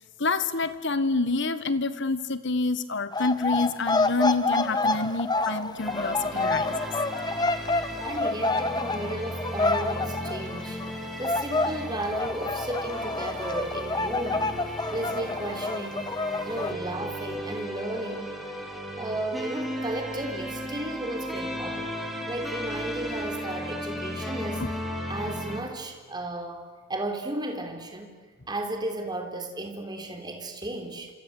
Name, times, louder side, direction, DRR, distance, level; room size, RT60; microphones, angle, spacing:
voice 1, 0.2-6.7, left 3 dB, 60° left, 13 dB, 1.6 m, -27 dB
sound 1, 3.1-11.0 11.2-16.7, left 3 dB, 20° left, 1.3 m, -28 dB
sound 2, 5.8-25.6, equal, ahead, 4.0 m, -36 dB
voice 2, 8.0-10.8 11.2-14.7 14.9-16.2 16.5-18.4 19.0-21.9 22.3-28.1 28.5-31.1, right 1 dB, 20° right, 4 dB, 3.7 m, -34 dB
27.5 x 26.5 x 8.0 m, 1.4 s
head